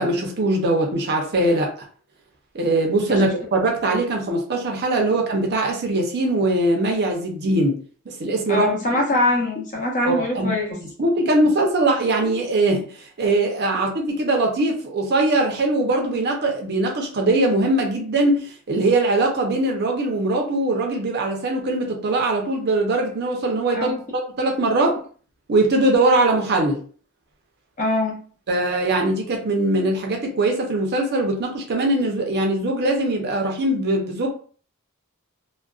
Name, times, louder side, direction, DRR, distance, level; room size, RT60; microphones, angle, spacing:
voice 1, 0.0-1.7 2.5-7.8 8.1-8.8 10.0-10.5 11.0-25.0 25.5-26.8 28.5-34.3, right 2 dB, 50° right, 2 dB, 0.6 m, -21 dB
voice 2, 8.5-10.8 23.7-24.0 27.8-28.2, left 1 dB, 35° left, -1 dB, 0.7 m, -23 dB
2.4 x 2.2 x 2.3 m, 0.43 s
head